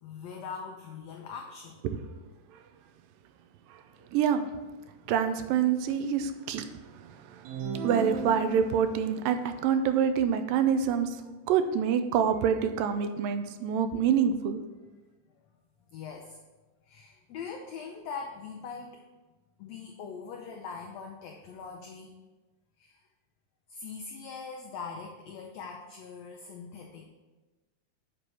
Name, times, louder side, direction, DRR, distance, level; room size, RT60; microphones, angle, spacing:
voice 1, 0.0-1.8 3.9-4.1 15.4-15.5 15.9-16.4 16.8-19.0 19.6-22.1 22.8-23.0 23.7-27.0, left 5 dB, 90° left, 2 dB, 1.5 m, -42 dB
voice 2, 4.1-4.5 5.1-6.7 6.9-7.5 7.8-11.2 11.5-14.6, right 7 dB, 90° right, 9 dB, 2.3 m, -26 dB
sound 1, 7.5-9.0, right 3 dB, 70° right, 1.8 m, -36 dB
7.9 x 4.6 x 5.4 m, 1.2 s
omnidirectional pair, 3.9 m